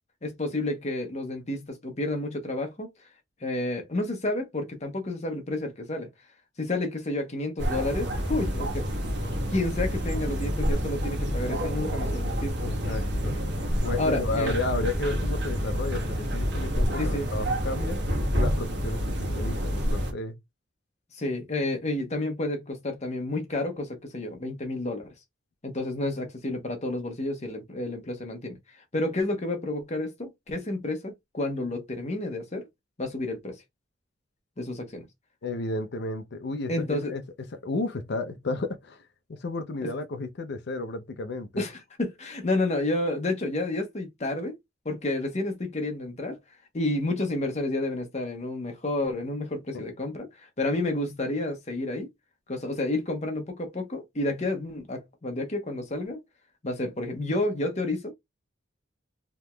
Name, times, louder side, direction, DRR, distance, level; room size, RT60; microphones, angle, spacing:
voice 1, 0.2-2.9 3.4-6.1 6.6-8.8 9.5-12.6 14.0-14.5 17.0-17.3 21.1-25.1 25.6-28.6 28.9-32.7 33.0-33.6 34.6-35.1 36.7-37.1 39.8-39.9 41.6-44.6 44.8-46.4 46.7-52.1 52.5-56.2 56.6-58.1, left 2 dB, 35° left, 0.9 m, -30 dB
sound 1, 7.6-20.1, equal, 60° right, 1.1 m, -28 dB
voice 2, 12.6-13.4 13.8-18.0 18.3-20.4 35.4-37.2 37.5-41.6 49.7-49.8, left 2 dB, 60° left, 0.5 m, -33 dB
3.5 x 2.9 x 2.2 m
head